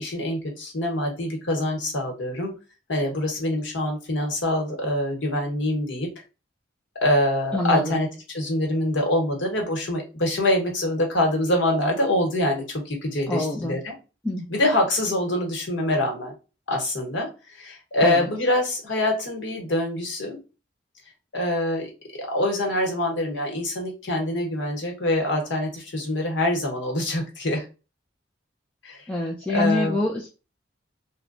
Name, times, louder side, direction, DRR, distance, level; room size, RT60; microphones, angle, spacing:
voice 1, 0.0-2.5 2.9-6.1 6.9-13.9 14.5-16.3 16.7-20.4 21.3-27.7 28.8-30.0, left 1 dB, 85° left, 1 dB, 1.1 m, -25 dB
voice 2, 7.5-8.0 13.3-13.8 14.2-14.5 18.0-18.2 29.1-30.3, left 2 dB, 5° left, -3 dB, 0.4 m, -25 dB
3.0 x 2.1 x 2.5 m, 0.31 s
head